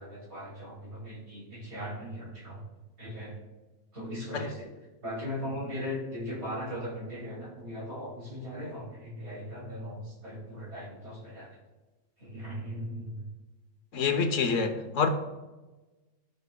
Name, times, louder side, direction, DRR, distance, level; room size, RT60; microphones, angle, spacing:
voice 1, 0.0-2.6 3.0-3.4 3.9-4.7 5.0-11.6 12.2-13.3, equal, 55° right, -4 dB, 2.7 m, -38 dB
voice 2, 13.9-15.1, left 5 dB, 75° left, 7 dB, 1.2 m, -27 dB
14.0 x 5.2 x 2.2 m, 1.1 s
omnidirectional pair, 1.3 m